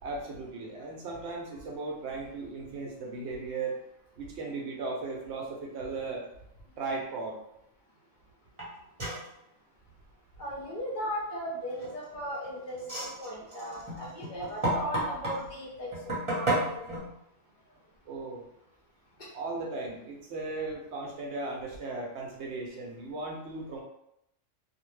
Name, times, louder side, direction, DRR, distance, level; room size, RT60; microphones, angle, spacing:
voice 1, 0.0-3.8 4.2-6.3 6.8-7.4 18.1-18.4 19.3-23.8, right 3 dB, 65° right, 0 dB, 0.8 m, -36 dB
sound 1, 8.6-8.7 9.0-9.3 11.7-12.2 12.7-15.4 15.9-17.0, right 1 dB, 25° right, 0.9 m, -31 dB
voice 2, 10.4-15.9 16.2-16.9, equal, 45° left, -5 dB, 0.8 m, -37 dB
2.6 x 2.1 x 3.1 m, 0.79 s
omnidirectional pair, 1.4 m